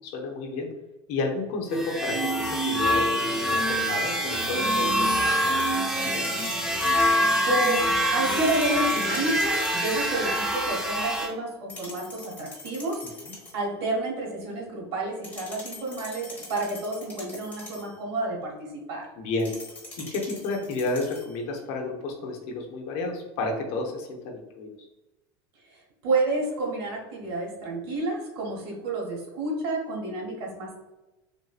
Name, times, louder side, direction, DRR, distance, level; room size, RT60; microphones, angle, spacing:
voice 1, 0.0-0.7 1.1-6.3 13.2-13.3 19.2-19.5 20.1-24.7, left 3 dB, 60° left, 1 dB, 0.7 m, -32 dB
sound 1, 1.7-11.3, equal, 5° right, 0.5 m, -25 dB
sound 2, 4.9-7.2 8.3-10.2 11.7-13.6 15.2-18.0 19.4-21.4, left 2 dB, 10° left, 1.1 m, -43 dB
voice 2, 7.0-13.0 13.5-19.1 25.7-30.8, right 2 dB, 75° right, -2 dB, 1.2 m, -30 dB
3.2 x 2.8 x 2.3 m, 1.0 s
supercardioid pair, 130°, 13 cm